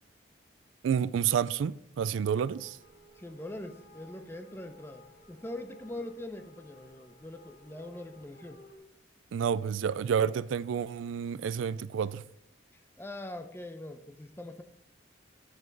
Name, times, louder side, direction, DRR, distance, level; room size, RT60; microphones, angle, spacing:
voice 1, 0.8-2.8 9.3-12.2, right 7 dB, 75° right, 0.3 m, -29 dB
sound 1, 2.1-8.8, equal, 55° left, 2.0 m, -57 dB
voice 2, 3.2-8.6 12.7-14.6, left 1 dB, 10° left, 0.6 m, -42 dB
7.8 x 7.7 x 3.9 m
head